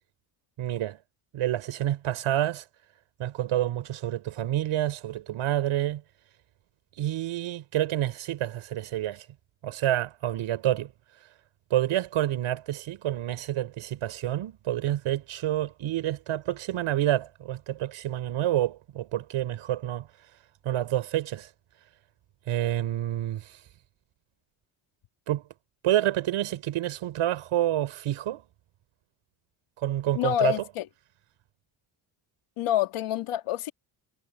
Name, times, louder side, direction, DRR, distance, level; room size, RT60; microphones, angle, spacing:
voice 1, 0.6-1.0 1.3-2.6 3.2-6.0 7.0-9.3 9.6-10.9 11.7-20.1 20.6-21.5 22.5-23.6 25.3-25.4 25.8-28.4 29.8-30.6, right 13 dB, 75° right, 5.0 m, -28 dB
voice 2, 30.2-30.9 32.6-33.7, left 12 dB, 85° left, 2.4 m, -27 dB
cardioid pair, 95°, 49 cm